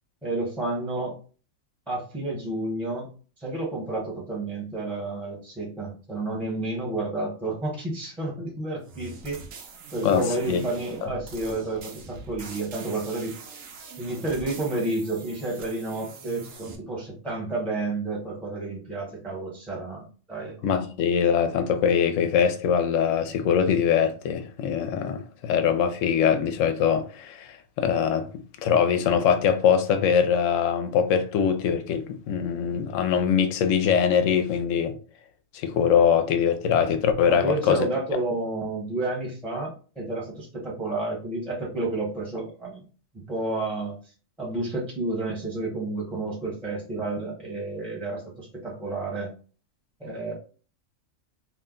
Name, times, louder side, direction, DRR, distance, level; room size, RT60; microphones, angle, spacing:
voice 1, 0.2-1.1 1.9-3.1 3.4-9.4 9.9-13.4 14.0-20.6 37.3-42.8 43.1-44.0 44.4-49.3 50.0-50.3, right 2 dB, ahead, 0.8 m, -30 dB
sound 1, 8.8-16.8, right 3 dB, 80° right, 1.0 m, -43 dB
voice 2, 20.6-28.3 28.6-34.9 35.5-37.9, left 7 dB, 75° left, 0.9 m, -22 dB
2.7 x 2.1 x 3.6 m
omnidirectional pair, 1.4 m